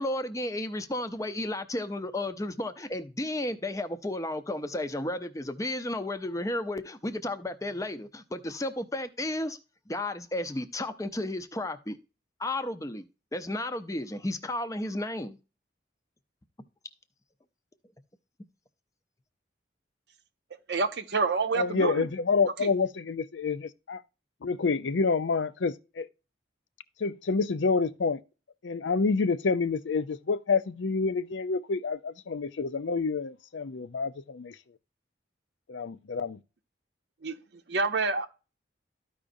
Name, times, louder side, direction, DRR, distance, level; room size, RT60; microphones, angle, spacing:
voice 1, 0.0-9.6 9.9-12.0 12.4-13.1 13.3-15.4, left 1 dB, 15° left, 0.6 m, -33 dB
voice 2, 20.7-22.1 22.6-22.7 37.2-37.4 37.7-38.3, right 4 dB, 65° right, 0.6 m, -27 dB
voice 3, 21.5-24.0 24.4-26.1 27.0-28.2 28.6-34.5 35.7-36.4, left 4 dB, 80° left, 0.5 m, -28 dB
13.5 x 5.0 x 2.6 m
head